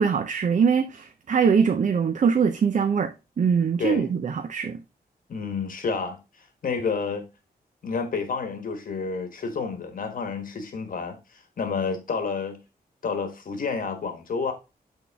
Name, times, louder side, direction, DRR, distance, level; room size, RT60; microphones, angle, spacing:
voice 1, 0.0-4.8, right 6 dB, 50° right, 0.6 m, -22 dB
voice 2, 3.8-4.1 5.3-7.3 7.8-12.6 13.0-14.5, left 5 dB, 60° left, 1.2 m, -30 dB
8.4 x 3.7 x 3.4 m
wide cardioid pair, 145°, 16 cm